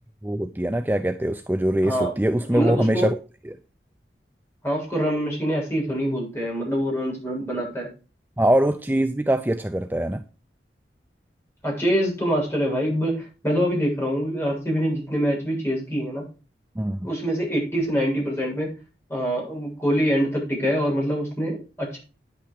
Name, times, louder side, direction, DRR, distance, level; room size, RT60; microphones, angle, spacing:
voice 1, 0.2-3.2 3.5-3.6 8.4-10.2 16.8-17.1, right 1 dB, 10° right, 0.5 m, -23 dB
voice 2, 2.5-3.1 4.6-7.9 11.6-16.2 17.0-18.7 19.1-22.0, equal, 15° left, 7.8 m, -25 dB
10.5 x 8.5 x 4.9 m
head